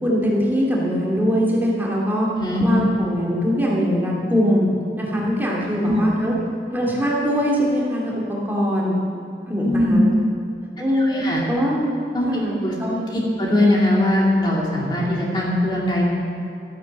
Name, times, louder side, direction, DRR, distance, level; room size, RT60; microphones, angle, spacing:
voice 1, 0.0-2.3 2.6-4.7 5.0-6.4 6.7-9.0 9.5-10.1 10.8-11.9 12.3-13.0, equal, 10° right, -4 dB, 2.4 m, -22 dB
voice 2, 9.6-10.0 10.9-11.4 12.1-12.7 13.1-16.1, left 1 dB, 25° left, -3 dB, 2.2 m, -20 dB
13.0 x 11.0 x 7.5 m, 2.8 s
head